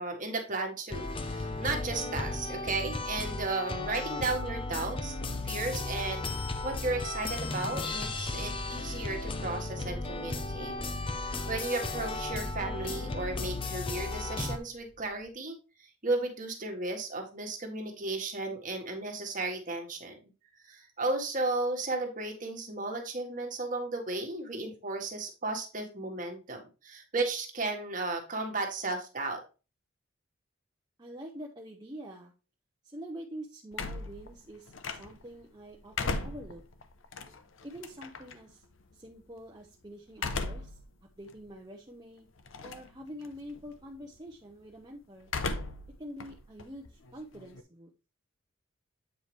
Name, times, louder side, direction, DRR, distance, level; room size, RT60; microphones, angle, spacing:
voice 1, 0.0-5.1 5.4-10.7 11.1-15.6 16.0-20.2 20.6-29.4, right 3 dB, 40° right, 3 dB, 1.6 m, -34 dB
sound 1, 0.9-14.6, left 2 dB, 25° left, 0.6 m, -35 dB
sound 2, 6.2-15.3, right 1 dB, 70° right, 1.2 m, -51 dB
voice 2, 31.0-32.3 32.8-36.6 37.6-38.6 38.9-40.8 41.2-42.3 42.6-45.3 46.0-47.9, equal, 20° right, -1 dB, 0.8 m, -46 dB
sound 3, 33.7-35.3 35.7-38.3 40.1-40.8 41.3-41.4 42.5-42.9 43.2-43.7 45.2-45.9 46.2-47.6, left 3 dB, 75° left, 0.8 m, -36 dB
8.2 x 4.8 x 3.3 m, 0.31 s
head